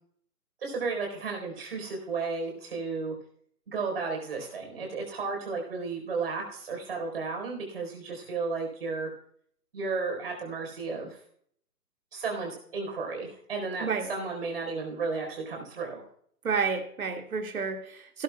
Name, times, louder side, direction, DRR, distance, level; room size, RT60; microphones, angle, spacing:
voice 1, 0.6-3.1 3.7-9.1 9.7-11.2 12.1-16.0, right 4 dB, 35° right, 1 dB, 4.1 m, -33 dB
voice 2, 16.4-18.2, right 5 dB, 60° right, 5 dB, 2.2 m, -30 dB
18.0 x 11.0 x 2.3 m, 0.63 s
hypercardioid pair, 175°, 47 cm